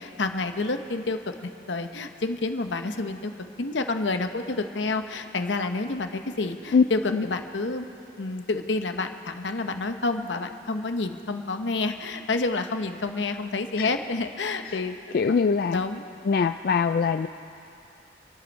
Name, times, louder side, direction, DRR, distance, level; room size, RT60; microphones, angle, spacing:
voice 1, 0.0-3.3 3.6-7.9 8.2-15.0 15.3-15.4 15.7-16.0, left 3 dB, 80° left, 7 dB, 0.9 m, -29 dB
voice 2, 15.1-15.8 16.2-17.3, left 5 dB, 55° left, 8 dB, 0.3 m, -22 dB
27.5 x 11.0 x 4.1 m, 2.7 s
head